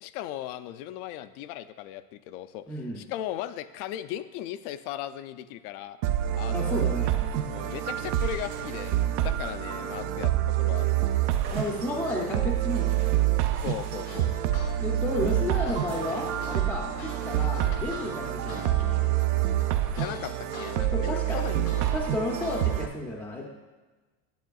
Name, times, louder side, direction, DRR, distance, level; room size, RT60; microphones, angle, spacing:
voice 1, 0.0-2.6 3.0-6.0 6.4-6.9 7.5-11.0 13.5-14.3 19.9-21.8, left 12 dB, 70° left, 13 dB, 0.5 m, -37 dB
voice 2, 2.7-3.0 6.5-7.2 7.5-7.7 11.5-13.2 14.8-19.0 20.9-21.4 21.9-23.5, left 1 dB, 5° left, 0 dB, 0.5 m, -32 dB
sound 1, 6.0-22.9, right 12 dB, 55° right, 0.5 m, -27 dB
sound 2, 7.6-10.6 11.3-15.4 15.9-16.7, right 6 dB, 90° right, 1.5 m, -48 dB
sound 3, 14.1-14.7 15.1-20.7 21.1-22.9, left 3 dB, 90° left, 2.4 m, -42 dB
9.3 x 7.4 x 2.3 m, 1.2 s
supercardioid pair, 135°, 46 cm